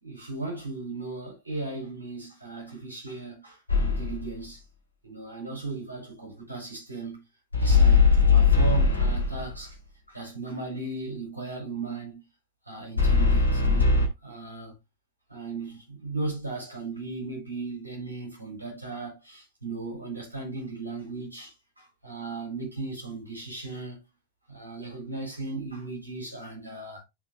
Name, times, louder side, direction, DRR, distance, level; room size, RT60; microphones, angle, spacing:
voice 1, 0.0-4.6 5.0-7.2 7.5-9.8 10.1-12.2 12.7-14.7 15.3-24.0 24.5-27.0, right 3 dB, 85° right, 3.7 m, -36 dB
sound 1, 3.7-4.3 7.5-9.6 13.0-14.1, left 4 dB, 85° left, 1.8 m, -20 dB
11.0 x 4.1 x 2.5 m
figure-of-eight pair, 90°, 0 cm